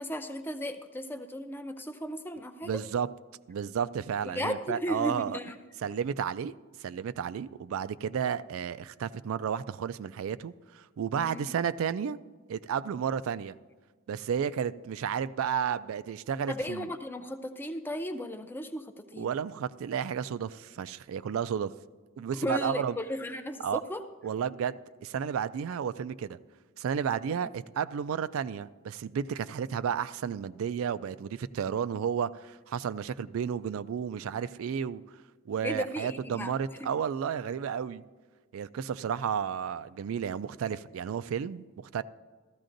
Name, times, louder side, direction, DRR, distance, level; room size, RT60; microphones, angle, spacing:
voice 1, 0.0-2.7 4.2-5.5 11.2-11.5 16.5-19.3 22.4-24.0 27.3-27.4 35.6-36.5 36.8-36.9, equal, 10° left, 0.5 m, -35 dB
voice 2, 2.6-3.1 3.5-5.4 5.8-6.5 6.8-12.2 12.5-13.6 14.1-16.9 19.2-21.7 22.2-22.9 23.6-23.8 24.2-26.4 26.8-35.0 35.5-38.0 38.5-42.0, right 7 dB, 75° right, 0.3 m, -32 dB
15.5 x 13.5 x 2.6 m
head